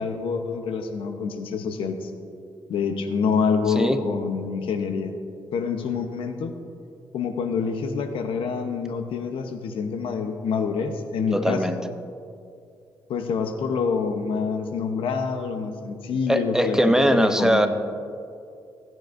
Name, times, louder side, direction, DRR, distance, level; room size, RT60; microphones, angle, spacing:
voice 1, 0.0-2.1 2.7-5.1 5.5-6.5 7.1-11.6 13.1-17.7, left 5 dB, 85° left, 6 dB, 0.9 m, -26 dB
voice 2, 11.3-11.8 16.3-17.7, equal, 5° right, 8 dB, 0.6 m, -20 dB
16.0 x 9.1 x 2.6 m, 2.4 s
cardioid pair, 100°, 9 cm